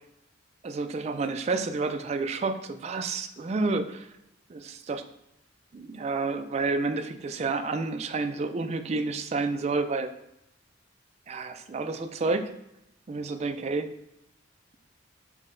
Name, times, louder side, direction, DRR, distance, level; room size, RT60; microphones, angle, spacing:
voice 1, 0.6-4.1 4.5-5.0 5.7-10.1 11.3-12.5 13.1-13.9, right 3 dB, 35° right, 8 dB, 0.3 m, -30 dB
6.0 x 2.1 x 3.7 m, 0.84 s
head